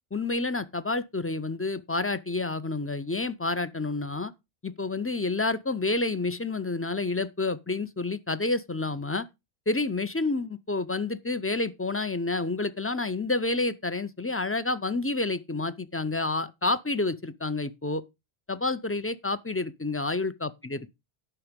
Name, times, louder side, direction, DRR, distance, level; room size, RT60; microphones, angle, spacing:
voice 1, 0.1-4.3 4.6-9.3 9.7-18.0 18.5-20.9, left 3 dB, 20° left, 0.4 m, -29 dB
10.0 x 6.0 x 5.1 m
omnidirectional pair, 1.1 m